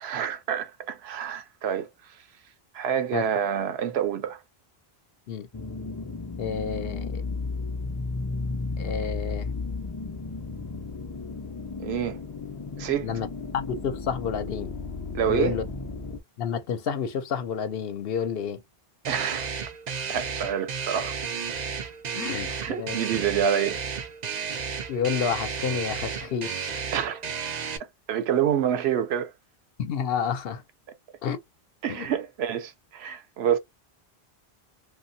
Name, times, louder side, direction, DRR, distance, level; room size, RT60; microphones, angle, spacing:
voice 1, 0.0-1.9 2.7-4.4 11.8-12.2 12.8-13.1 15.1-15.6 19.1-19.5 20.1-21.1 22.5-23.8 26.9-27.4 28.1-29.3 31.8-33.6, right 9 dB, 85° right, 0.9 m, -27 dB
sound 1, 5.5-16.2, left 3 dB, 35° left, 0.3 m, -34 dB
voice 2, 6.4-7.2 8.8-9.5 13.0-13.3 13.5-14.7 15.3-15.6 16.4-18.6 22.1-22.5 22.8-23.0 24.9-26.8 29.8-30.6 31.2-31.4 31.9-32.1, left 7 dB, 70° left, 0.8 m, -29 dB
sound 2, 19.0-27.8, right 6 dB, 50° right, 0.6 m, -33 dB
2.8 x 2.3 x 2.6 m
omnidirectional pair, 1.0 m